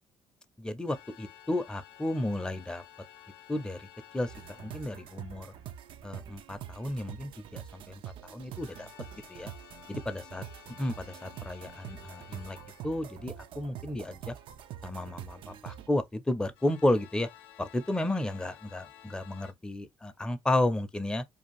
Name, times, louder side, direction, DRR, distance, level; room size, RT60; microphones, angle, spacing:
voice 1, 0.6-2.8 3.5-3.9 4.1-4.3 4.6-5.5 6.0-8.9 9.3-9.5 9.9-10.4 10.8-12.6 12.8-14.3 14.8-17.3 17.6-21.2, left 1 dB, 10° left, 0.5 m, -32 dB
sound 1, 0.9-5.8 8.6-13.7 16.6-19.5, left 10 dB, 80° left, 0.5 m, -54 dB
sound 2, 4.3-15.9, right 11 dB, 70° right, 0.4 m, -45 dB
2.6 x 2.3 x 3.0 m
cardioid pair, 95°, 9 cm